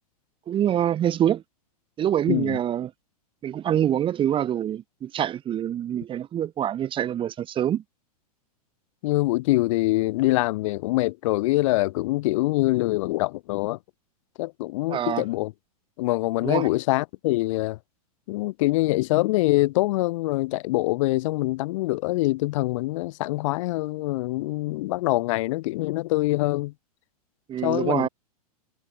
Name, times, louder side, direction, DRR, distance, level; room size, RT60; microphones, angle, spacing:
voice 1, 0.5-1.4 2.0-2.9 3.4-7.8 14.9-15.2 16.4-16.7 27.5-28.1, right 10 dB, 25° right, 2.3 m, -25 dB
voice 2, 9.0-13.8 14.4-15.5 16.0-17.8 18.3-26.7 27.6-28.1, left 19 dB, 50° left, 3.0 m, -24 dB
figure-of-eight pair, 105°, 20 cm